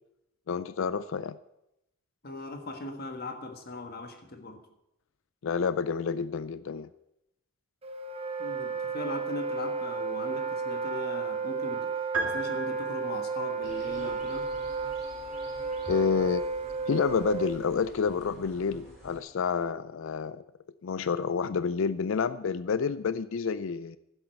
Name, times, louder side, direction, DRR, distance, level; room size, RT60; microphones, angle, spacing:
voice 1, 0.5-1.4 5.4-6.9 15.9-16.4 16.9-20.4 20.8-24.0, left 5 dB, 60° left, 15 dB, 0.4 m, -29 dB
voice 2, 2.2-4.6 8.4-11.9 12.2-14.5, left 2 dB, 45° left, 6 dB, 1.5 m, -39 dB
Wind instrument woodwind instrument, 7.8-17.7, right 4 dB, 25° right, 0.9 m, -33 dB
sound 1, 12.1-13.5, right 3 dB, 85° right, 1.9 m, -34 dB
sound 2, 13.6-19.2, equal, ahead, 3.9 m, -49 dB
11.0 x 7.8 x 8.2 m, 0.84 s
head